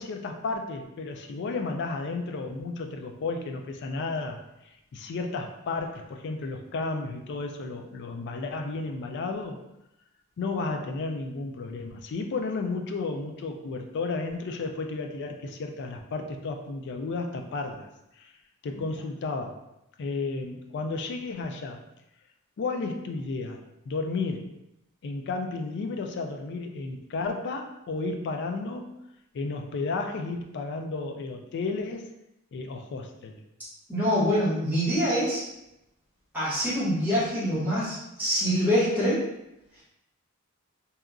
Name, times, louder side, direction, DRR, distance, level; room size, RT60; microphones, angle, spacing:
voice 1, 0.0-4.4 4.9-9.6 10.4-17.9 18.2-18.3 18.6-19.6 20.0-21.8 22.6-24.4 25.0-28.9 29.3-32.1 32.5-33.4, left 3 dB, 55° left, 4 dB, 0.3 m, -33 dB
voice 2, 33.9-35.4 36.3-39.2, equal, 10° right, -10 dB, 1.1 m, -25 dB
2.8 x 2.3 x 2.4 m, 0.88 s
head